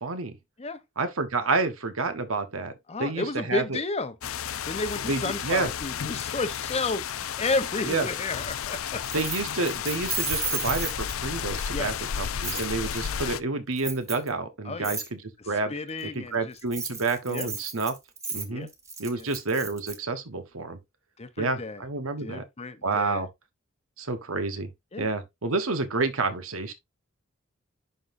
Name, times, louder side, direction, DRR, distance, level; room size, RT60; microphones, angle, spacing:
voice 1, 0.0-0.3 1.0-2.7 3.0-3.8 5.1-5.7 7.9-8.0 9.1-15.2 15.5-15.7 16.0-17.9 18.3-18.7 19.0-20.8 21.4-22.4 22.8-23.3 24.0-24.7 25.0-26.7, right 3 dB, 85° right, 1.2 m, -29 dB
voice 2, 2.9-4.2 4.6-9.0 11.7-11.9 14.6-15.0 15.4-16.5 17.3-17.5 18.5-18.7 19.1-19.3 21.2-21.8 22.2-23.2 24.9-25.1, left 3 dB, 30° left, 0.8 m, -32 dB
sound 1, 4.2-13.4, left 8 dB, 85° left, 0.5 m, -32 dB
Keys jangling, 9.0-11.4 12.4-12.7 13.8-14.3 14.8-15.1 16.6-20.0, right 4 dB, 15° right, 1.3 m, -33 dB
11.0 x 3.8 x 2.6 m
head